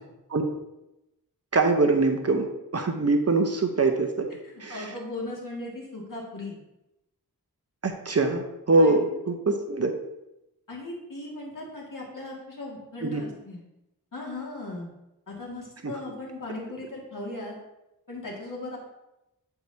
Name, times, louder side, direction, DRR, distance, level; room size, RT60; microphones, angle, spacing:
voice 1, 1.5-2.5 2.7-4.3 4.6-4.9 7.8-9.9 13.0-13.3 15.8-15.9, right 3 dB, 40° right, 5 dB, 0.7 m, -23 dB
voice 2, 4.7-6.6 8.8-9.0 10.7-13.6 14.1-14.9 15.3-17.6 18.1-18.8, left 2 dB, 55° left, -3 dB, 2.0 m, -37 dB
8.2 x 4.7 x 2.7 m, 0.91 s
wide cardioid pair, 65°, 38 cm